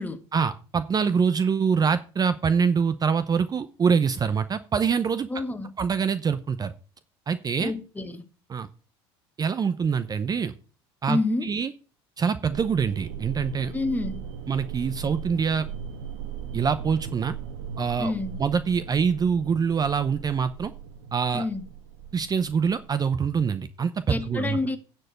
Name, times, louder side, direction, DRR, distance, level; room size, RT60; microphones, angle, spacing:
voice 1, 0.3-5.3 5.8-6.7 7.3-7.7 8.5-8.7 9.4-10.5 11.0-11.7 12.2-13.7 14.5-15.7 16.5-17.3 17.8-18.1 18.4-20.7 21.1-21.5 22.1-24.6, right 6 dB, 30° right, 0.7 m, -25 dB
voice 2, 5.3-5.7 7.6-8.2 11.1-11.5 13.7-14.2 18.0-18.4 21.3-21.6 24.1-24.8, left 2 dB, 15° left, 1.4 m, -28 dB
sound 1, 12.5-23.0, right 7 dB, 80° right, 1.3 m, -38 dB
9.5 x 4.6 x 7.8 m
hypercardioid pair, 80°, 13 cm